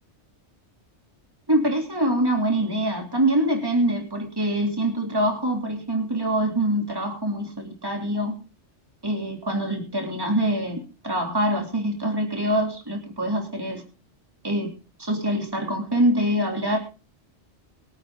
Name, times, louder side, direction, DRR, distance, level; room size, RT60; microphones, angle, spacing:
voice 1, 1.5-8.3 9.0-13.8 14.4-14.7 15.0-16.8, right 1 dB, 20° right, 2 dB, 3.4 m, -24 dB
23.5 x 8.7 x 4.1 m, 0.34 s
omnidirectional pair, 1.2 m